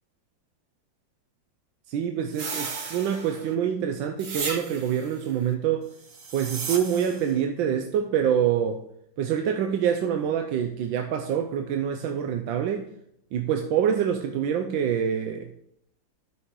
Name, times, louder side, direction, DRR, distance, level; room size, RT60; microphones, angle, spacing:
voice 1, 1.9-5.9 6.3-8.8 9.2-12.9 13.3-15.5, right 8 dB, 85° right, 1.4 m, -26 dB
sound 1, 2.3-3.5 4.2-5.1 6.0-7.3, right 5 dB, 50° right, 1.3 m, -35 dB
12.5 x 6.1 x 3.7 m
omnidirectional pair, 2.1 m